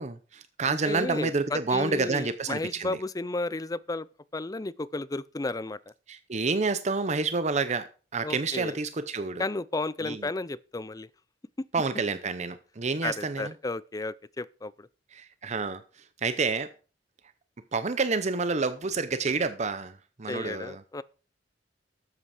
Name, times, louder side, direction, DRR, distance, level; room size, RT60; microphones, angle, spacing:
voice 1, 0.0-3.0 6.1-9.4 10.0-10.3 11.7-13.5 15.1-16.7 17.7-20.8, right 4 dB, 40° right, 0.7 m, -29 dB
voice 2, 0.7-4.1 4.3-5.8 8.2-8.8 9.4-11.1 11.6-11.7 13.0-14.9 20.3-21.0, left 2 dB, 20° left, 0.5 m, -33 dB
12.5 x 8.2 x 4.9 m
head